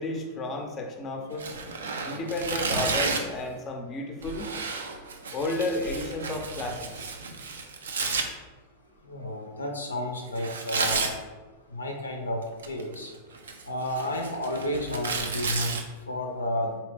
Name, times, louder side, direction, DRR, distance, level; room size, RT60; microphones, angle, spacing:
voice 1, 0.0-1.5 2.0-4.5 5.3-7.1, left 2 dB, 25° left, 3 dB, 0.5 m, -32 dB
Tearing, 1.3-3.4 4.2-8.2 10.4-11.1 12.4-12.9 13.3-15.8, right 4 dB, 65° right, 0.4 m, -31 dB
voice 2, 9.1-11.1 11.7-12.4 12.7-13.1 13.7-15.8 16.1-16.8, left 1 dB, 80° left, 2 dB, 0.5 m, -31 dB
4.0 x 2.8 x 3.3 m, 1.3 s
figure-of-eight pair, 90°, 0 cm